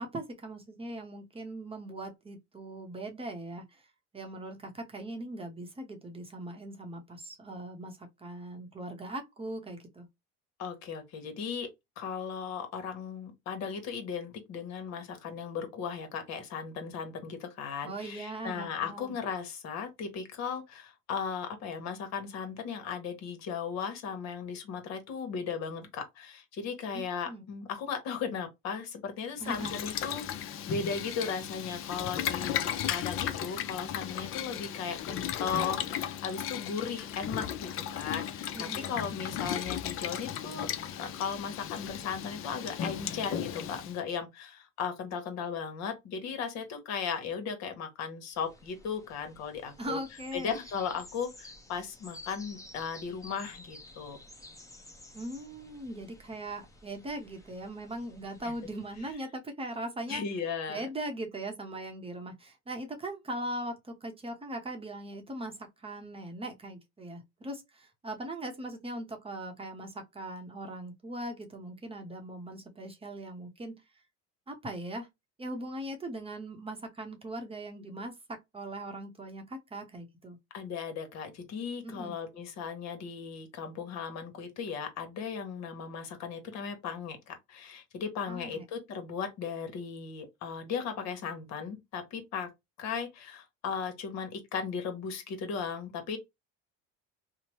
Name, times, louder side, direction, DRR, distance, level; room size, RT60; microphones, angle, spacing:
voice 1, 0.0-3.8 4.1-10.1 17.8-19.1 26.9-27.5 29.4-29.7 38.5-39.0 49.8-50.5 55.1-60.2 60.7-73.8 74.5-75.1 75.4-80.4 81.8-82.1 88.3-88.6, right 1 dB, 20° right, 0.7 m, -40 dB
voice 2, 10.6-11.7 12.0-40.7 41.0-50.0 50.3-54.2 58.4-58.5 60.1-60.9 80.5-92.5 92.8-96.2, left 6 dB, 60° left, 1.1 m, -37 dB
Boiling, 29.4-44.0, left 10 dB, 45° left, 0.5 m, -36 dB
sound 1, 48.3-59.1, left 2 dB, 10° left, 0.7 m, -53 dB
2.8 x 2.1 x 3.0 m
cardioid pair, 115°, 30 cm